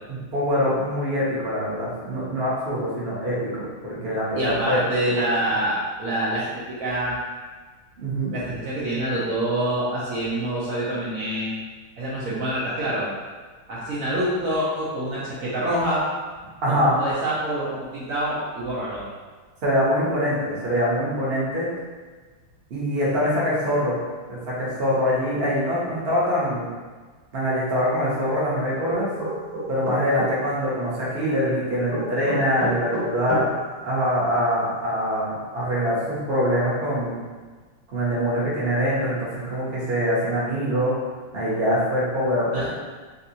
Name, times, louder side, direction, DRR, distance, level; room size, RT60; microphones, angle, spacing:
voice 1, 0.1-4.8 5.1-5.3 8.0-8.3 16.6-17.0 19.6-21.7 22.7-24.0 24.3-26.7 27.3-29.1 29.7-33.5 33.8-37.2 37.9-41.0 41.3-42.7, equal, 50° right, -7 dB, 0.7 m, -24 dB
voice 2, 4.4-7.2 8.3-11.5 12.0-13.1 13.7-16.0 16.7-19.0 42.5-42.6, right 1 dB, 90° right, -9 dB, 0.7 m, -26 dB
sound 1, 28.9-30.3 31.9-33.5, right 1 dB, 70° right, 1.9 m, -28 dB
3.8 x 2.5 x 2.8 m, 1.4 s
omnidirectional pair, 2.4 m